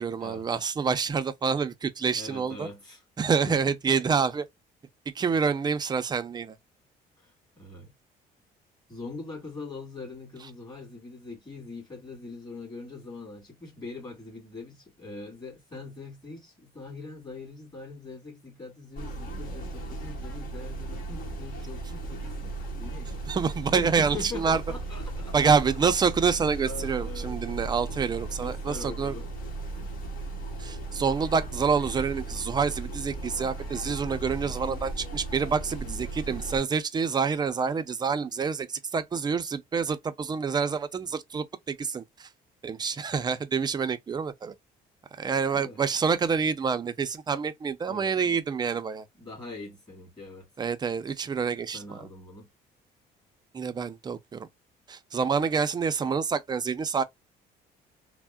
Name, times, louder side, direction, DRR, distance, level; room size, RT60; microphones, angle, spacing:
voice 1, 0.0-2.7 3.2-4.5 5.1-6.6 23.3-24.6 25.3-29.1 30.6-42.3 42.6-44.5 45.2-49.0 50.6-52.1 53.5-54.5 54.9-57.0, right 5 dB, 25° right, 0.4 m, -27 dB
voice 2, 2.1-4.0 7.2-7.9 8.9-23.2 23.8-25.5 26.6-27.4 28.4-29.3 29.8-30.0 45.5-45.8 47.9-48.2 49.2-50.5 51.7-52.5, left 3 dB, 25° left, 2.1 m, -42 dB
sound 1, 19.0-36.6, right 2 dB, 60° left, 1.3 m, -36 dB
3.4 x 2.0 x 2.2 m
cardioid pair, 110°, 17 cm